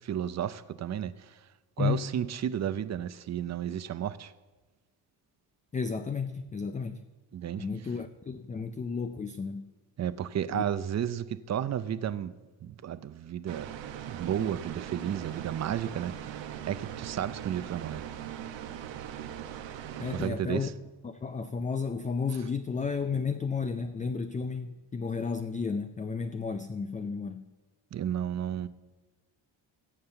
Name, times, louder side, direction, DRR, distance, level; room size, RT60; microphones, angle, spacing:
voice 1, 0.0-1.4 1.8-4.3 7.3-7.7 10.0-12.3 12.6-13.7 14.1-18.0 20.1-20.7 27.9-28.7, right 9 dB, 40° right, 15 dB, 0.6 m, -33 dB
voice 2, 1.8-2.1 5.7-7.0 7.6-9.7 10.5-10.6 20.0-20.7 21.0-27.4, left 5 dB, 20° left, 9 dB, 0.4 m, -32 dB
sound 1, 13.5-20.3, right 10 dB, 80° right, 1.0 m, -40 dB
16.5 x 5.5 x 6.8 m, 1.2 s
cardioid pair, 100°, 45 cm